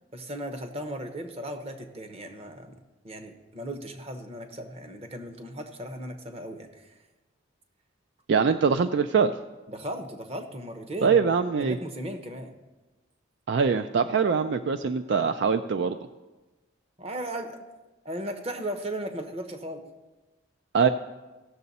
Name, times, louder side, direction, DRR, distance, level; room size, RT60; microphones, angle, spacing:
voice 1, 0.1-2.8 3.0-6.9 9.7-11.3 11.6-12.5 17.0-17.6 18.0-19.8, right 1 dB, 30° right, 6 dB, 0.9 m, -36 dB
voice 2, 8.3-9.3 11.0-11.8 13.5-16.0 20.7-20.9, right 5 dB, 60° right, 9 dB, 0.3 m, -23 dB
16.0 x 6.7 x 4.1 m, 1.2 s
head